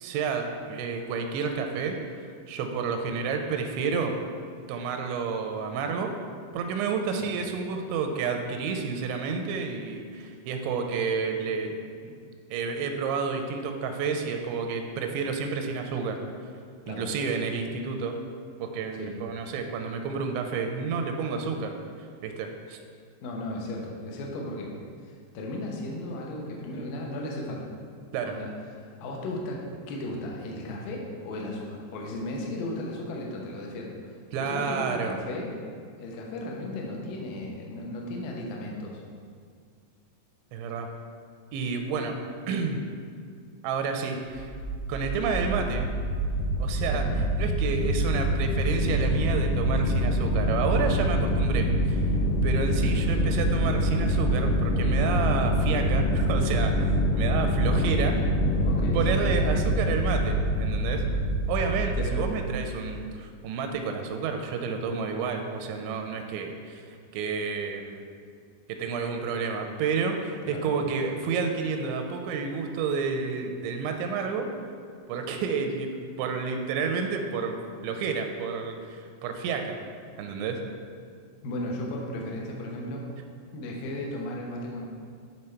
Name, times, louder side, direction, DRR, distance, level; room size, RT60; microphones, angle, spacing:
voice 1, 0.0-2.0 2.5-4.1 4.7-6.1 6.5-11.7 12.0-12.1 12.5-16.2 16.9-18.2 18.6-21.8 22.2-22.8 28.1-28.4 34.3-35.2 40.5-40.9 41.5-42.2 42.5-42.8 43.6-44.5 44.9-45.9 46.6-52.1 52.4-58.2 58.9-61.1 61.5-66.9 67.1-68.1 68.7-74.5 75.1-79.8 80.2-80.6, right 5 dB, 85° right, 5 dB, 2.9 m, -30 dB
voice 2, 23.2-24.7 25.0-27.7 28.2-28.5 29.0-35.5 36.0-39.0 46.9-47.1 57.7-57.8 58.6-59.2 62.0-62.2 70.5-70.7 81.4-83.1 83.5-84.9, left 1 dB, 75° left, -1 dB, 2.1 m, -35 dB
sound 1, 44.3-62.3, equal, 50° left, 1.7 m, -25 dB
10.0 x 3.6 x 4.4 m, 2.1 s
omnidirectional pair, 5.1 m